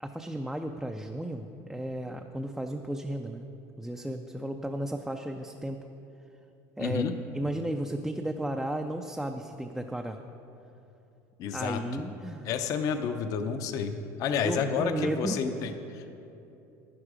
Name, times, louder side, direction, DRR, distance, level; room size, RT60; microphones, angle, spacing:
voice 1, 0.0-3.4 3.8-5.8 6.8-7.0 7.3-10.2 11.5-12.5 14.4-15.4, right 1 dB, 5° right, 4 dB, 0.4 m, -34 dB
voice 2, 6.8-7.1 11.4-12.0 12.4-16.2, left 6 dB, 45° left, 8 dB, 0.7 m, -30 dB
11.0 x 10.0 x 4.9 m, 2.9 s
cardioid pair, 140°, 8 cm